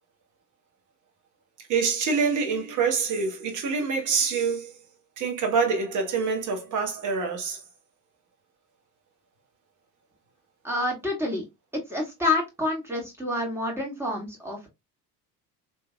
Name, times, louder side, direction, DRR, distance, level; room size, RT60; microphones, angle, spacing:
voice 1, 1.7-4.7 5.2-7.6, right 5 dB, 40° right, 1.1 m, -26 dB
voice 2, 10.6-11.4 11.7-14.7, left 2 dB, 5° right, 2.0 m, -28 dB
3.3 x 3.0 x 2.3 m
figure-of-eight pair, 60°, 49 cm